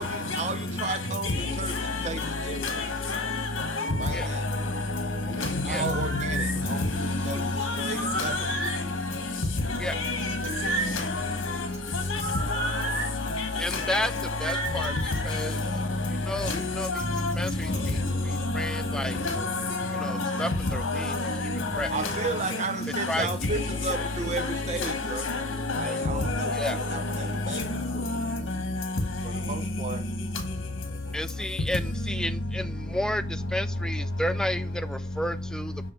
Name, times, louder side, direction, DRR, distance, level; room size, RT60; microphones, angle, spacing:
voice 1, 0.0-2.9 4.0-4.5 5.2-8.5 21.9-25.3 25.8-28.1 29.2-30.4 31.1-31.5, right 3 dB, 35° right, 0.8 m, -35 dB
voice 2, 1.2-2.3 2.6-4.2 5.4-6.2 6.7-6.8 7.2-8.8 9.9-10.3 10.7-11.2 11.5-11.6 11.9-12.2 12.5-12.9 13.2-14.0 14.5-15.0 15.3-15.5 16.4-17.3 17.7-17.9 19.1-22.3 23.0-23.1 23.9-25.0 25.2-26.8 27.5-27.6 28.3-28.4, left 3 dB, 75° left, 1.3 m, -29 dB
sound 1, 5.4-19.8, right 1 dB, 15° right, 4.9 m, -53 dB
sound 2, 5.7-6.6 7.9-8.8 10.1-11.0 12.2-13.1 14.4-15.3, right 3 dB, 65° right, 4.1 m, -33 dB
voice 3, 13.6-14.1 14.4-14.9 15.2-15.6 16.3-16.9 17.4-17.7 18.5-19.2 20.0-21.1 21.8-21.9 23.1-23.3 26.6-26.8 31.1-35.7, left 1 dB, 5° left, 0.3 m, -31 dB
6.5 x 6.2 x 4.3 m
head